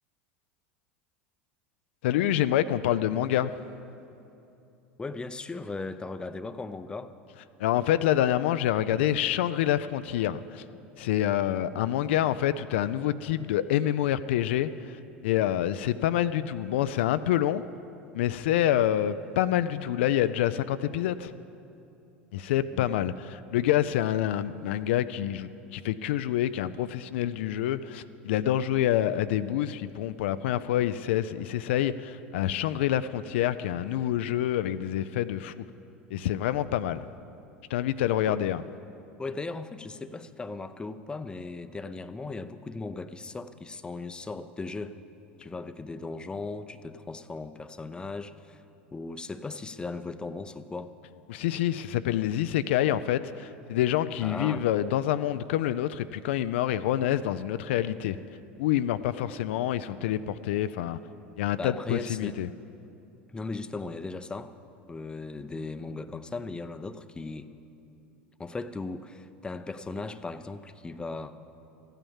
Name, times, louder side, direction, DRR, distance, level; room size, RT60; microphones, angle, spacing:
voice 1, 2.0-3.5 7.6-10.6 11.0-17.6 18.1-21.3 22.3-35.6 36.1-37.1 37.7-38.6 51.3-58.2 58.6-61.0 61.4-62.5, left 12 dB, 70° left, 12 dB, 0.4 m, -27 dB
voice 2, 5.0-7.1 22.7-23.0 38.3-38.4 39.2-45.0 45.4-48.6 48.9-50.9 54.2-54.6 61.6-62.4 63.3-64.5 64.9-67.5 68.4-71.3, left 3 dB, 15° left, 11 dB, 0.6 m, -37 dB
14.0 x 9.1 x 7.2 m, 2.8 s
hypercardioid pair, 85°, 6 cm